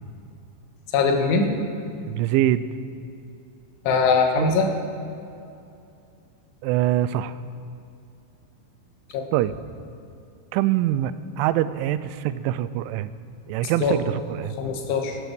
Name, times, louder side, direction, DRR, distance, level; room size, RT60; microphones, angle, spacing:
voice 1, 0.9-1.5 3.9-4.7 9.1-9.2 13.8-14.0 14.6-15.2, left 4 dB, 80° left, 3 dB, 3.9 m, -21 dB
voice 2, 2.1-2.6 4.4-4.5 6.6-7.4 9.3-9.6 10.5-13.1 13.5-14.6, right 13 dB, 85° right, 14 dB, 3.0 m, -24 dB
17.0 x 12.5 x 6.2 m, 2.6 s
omnidirectional pair, 5.4 m